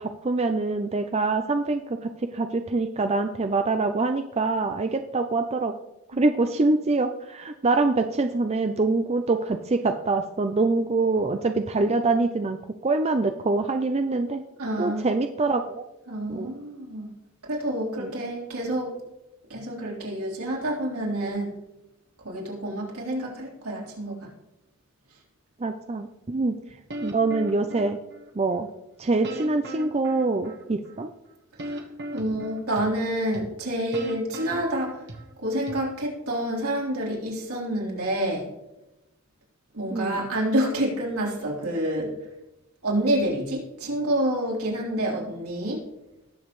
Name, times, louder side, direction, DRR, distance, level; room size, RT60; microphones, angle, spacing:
voice 1, 0.0-5.7 6.2-12.6 12.8-14.4 14.8-15.8 16.3-16.5 18.0-18.1 25.6-26.6 27.0-28.0 28.4-28.7 29.0-31.1 39.9-40.2, right 3 dB, 30° right, 7 dB, 0.4 m, -25 dB
voice 2, 14.6-15.1 16.1-17.1 17.4-19.0 19.5-21.6 22.2-24.3 31.6-31.9 32.1-35.0 35.4-38.5 39.7-42.1 42.8-45.8, right 1 dB, 80° right, -3 dB, 3.8 m, -28 dB
sound 1, 26.9-28.3 29.2-31.0 31.6-32.9 33.3-33.4 33.9-35.3 35.7-35.8, right 1 dB, 50° right, 1.3 m, -37 dB
19.0 x 7.2 x 3.1 m, 0.93 s
head